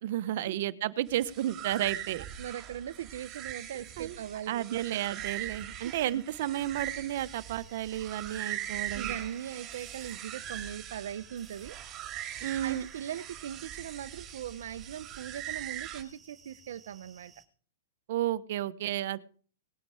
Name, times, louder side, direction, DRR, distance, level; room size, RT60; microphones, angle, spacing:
voice 1, 0.0-2.2 4.0-4.2 4.5-9.1 12.4-12.9 18.1-19.2, right 13 dB, 50° right, 13 dB, 1.0 m, -32 dB
sound 1, 1.1-16.0, right 11 dB, 25° right, 2.4 m, -41 dB
voice 2, 2.1-4.8 5.8-6.2 8.6-11.8 12.2-17.3, right 10 dB, 65° right, 10 dB, 0.7 m, -40 dB
sound 2, 7.1-17.4, right 4 dB, 5° right, 2.0 m, -58 dB
19.0 x 9.8 x 4.9 m, 0.42 s
hypercardioid pair, 165°, 0 cm